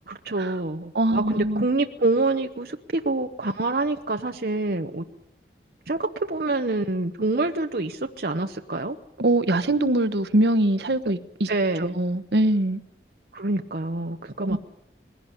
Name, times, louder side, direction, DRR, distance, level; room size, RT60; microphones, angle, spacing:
voice 1, 0.1-5.0 5.9-9.0 11.5-12.0 13.3-14.6, right 2 dB, 55° right, 5 dB, 0.9 m, -26 dB
voice 2, 0.9-1.7 9.2-11.5 11.8-12.8 14.4-14.6, right 1 dB, 75° right, 10 dB, 1.1 m, -22 dB
21.0 x 16.5 x 9.8 m, 0.84 s
head